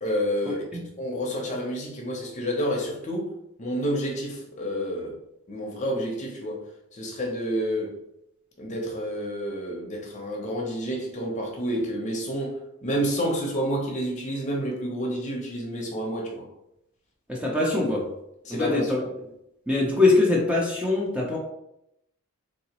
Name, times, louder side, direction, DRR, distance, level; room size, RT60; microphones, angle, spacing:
voice 1, 0.0-0.6 1.0-3.3 3.6-5.2 5.5-6.6 6.9-7.9 8.6-16.5 18.4-19.1, equal, 35° left, -1 dB, 0.8 m, -29 dB
voice 2, 17.3-18.0 18.5-19.0 19.7-21.4, left 2 dB, 5° right, -4 dB, 0.6 m, -22 dB
3.9 x 2.9 x 2.9 m, 0.81 s
head